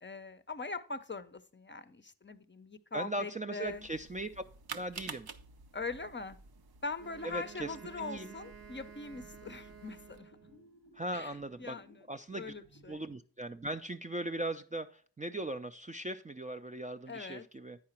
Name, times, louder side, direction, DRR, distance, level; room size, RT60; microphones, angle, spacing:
voice 1, 0.0-3.9 5.7-6.4 6.8-10.3 11.1-12.0 12.4-13.0 17.1-17.5, left 3 dB, 30° left, 0.5 m, -42 dB
voice 2, 2.9-4.4 4.7-5.3 7.2-8.3 10.9-11.8 12.1-12.5 12.9-17.8, right 1 dB, 20° right, 0.3 m, -39 dB
sound 1, 3.6-10.2, right 5 dB, 75° right, 0.7 m, -50 dB
Wind instrument woodwind instrument, 7.0-10.7, right 7 dB, 40° right, 0.8 m, -53 dB
sound 2, 8.1-13.2, equal, 90° right, 1.7 m, -61 dB
9.5 x 4.8 x 4.3 m
wide cardioid pair, 85°, 38 cm